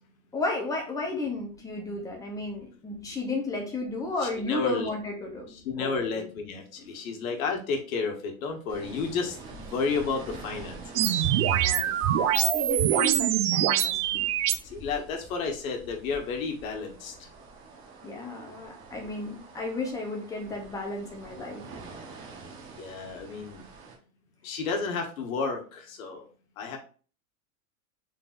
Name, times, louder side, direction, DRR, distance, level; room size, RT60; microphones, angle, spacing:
voice 1, 0.3-6.3 11.5-14.3 18.0-21.6, left 2 dB, 10° left, 1 dB, 0.6 m, -34 dB
voice 2, 4.2-4.9 5.5-11.3 14.6-17.1 22.8-23.6 24.4-26.2 26.6-26.8, left 4 dB, 70° left, 3 dB, 1.3 m, -32 dB
sound 1, 8.7-24.0, right 3 dB, 30° right, 0.9 m, -47 dB
sound 2, 11.0-14.6, right 11 dB, 55° right, 0.5 m, -24 dB
3.8 x 3.8 x 2.5 m, 0.38 s
supercardioid pair, 150°, 43 cm